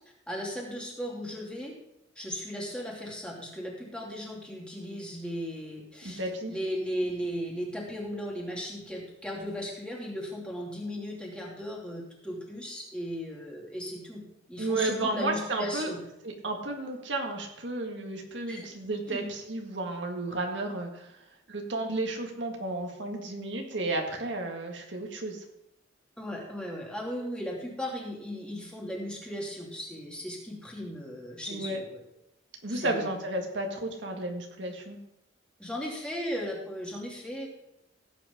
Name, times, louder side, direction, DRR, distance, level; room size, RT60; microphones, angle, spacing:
voice 1, 0.3-1.7 2.2-6.2 6.5-14.2 14.5-16.0 18.5-18.7 19.1-19.3 26.2-32.0 32.7-33.1 35.6-37.5, equal, 5° left, -3 dB, 2.7 m, -36 dB
voice 2, 6.0-6.5 14.6-15.9 16.2-21.2 21.5-25.4 31.5-31.8 32.6-35.0, right 2 dB, 70° right, 2 dB, 1.8 m, -32 dB
16.5 x 8.4 x 3.7 m, 0.87 s
head